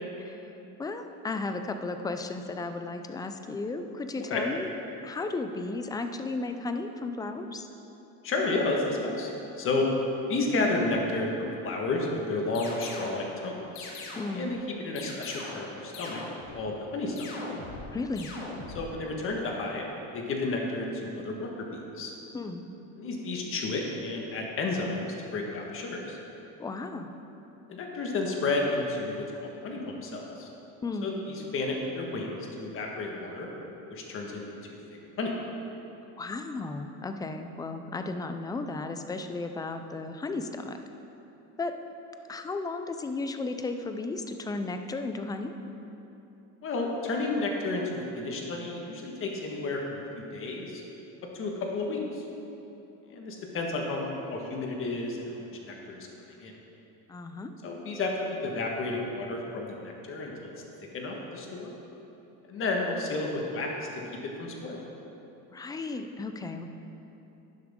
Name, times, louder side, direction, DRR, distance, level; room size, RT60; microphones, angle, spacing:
voice 1, 0.8-4.7 5.0-7.7 14.2-14.5 17.9-18.3 22.3-22.7 26.6-27.2 30.8-31.1 36.2-40.8 41.6-41.7 42.3-45.5 57.1-57.5 65.5-66.7, left 3 dB, 10° left, 7 dB, 0.3 m, -34 dB
voice 2, 8.2-9.3 9.6-9.9 10.3-13.9 14.3-16.2 16.5-17.3 18.7-19.9 20.1-21.7 21.9-22.1 22.9-26.2 27.7-30.5 31.0-33.5 33.9-34.6 35.2-35.3 46.6-50.8 51.3-52.2 53.0-56.5 57.6-58.1 58.4-60.5 60.9-61.7 62.5-64.8, left 2 dB, 35° left, 0 dB, 1.6 m, -32 dB
sound 1, 12.6-13.2 13.8-14.5 15.0-15.7 15.9-16.6 17.2-17.9 18.2-18.8, left 3 dB, 90° left, 2.0 m, -41 dB
11.0 x 11.0 x 3.7 m, 3.0 s
cardioid pair, 150°, 35 cm